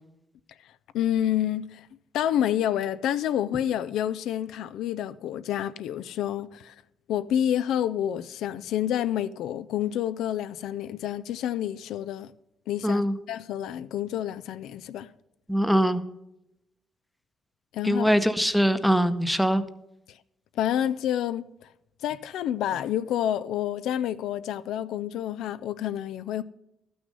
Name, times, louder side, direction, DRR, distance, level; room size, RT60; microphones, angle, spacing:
voice 1, 0.9-1.9 2.1-6.7 7.1-12.3 12.7-15.1 17.7-18.1 20.6-21.4 22.0-26.4, left 11 dB, 85° left, 0.3 m, -28 dB
voice 2, 12.8-13.2 15.5-16.0 17.8-19.6, equal, ahead, 0.7 m, -22 dB
12.0 x 6.2 x 5.3 m
cardioid pair, 90°, 0 cm